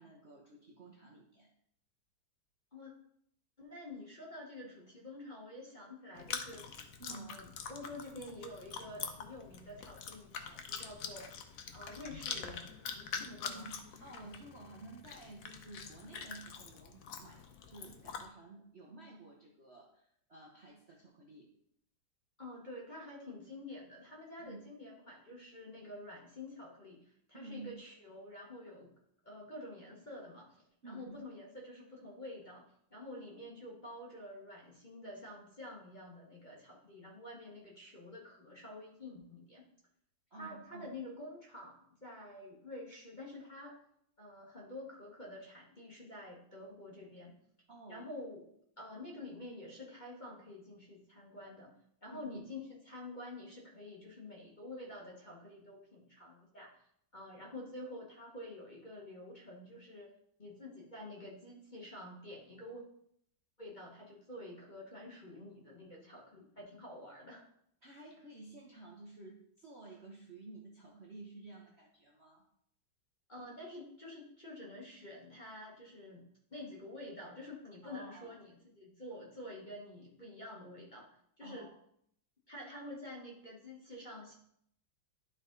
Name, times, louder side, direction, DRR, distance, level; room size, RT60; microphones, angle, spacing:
voice 1, 0.0-1.5 7.0-7.3 13.2-21.5 24.4-24.6 27.3-27.7 30.8-31.2 40.3-40.9 47.7-48.1 52.0-52.4 67.8-72.4 77.8-78.4 81.4-81.7, right 2 dB, 45° right, -2 dB, 1.0 m, -52 dB
voice 2, 3.6-6.7 7.1-11.3 11.7-13.7 22.4-28.9 29.2-39.7 40.3-43.8 44.2-47.4 47.9-51.7 52.0-60.1 60.4-62.8 63.6-67.4 73.3-81.1 81.4-81.7 82.5-84.3, left 1 dB, 30° left, -3 dB, 1.2 m, -48 dB
Chewing mastication, 6.1-18.2, left 6 dB, 60° left, 0.9 m, -45 dB
11.5 x 4.1 x 3.8 m, 0.70 s
omnidirectional pair, 2.1 m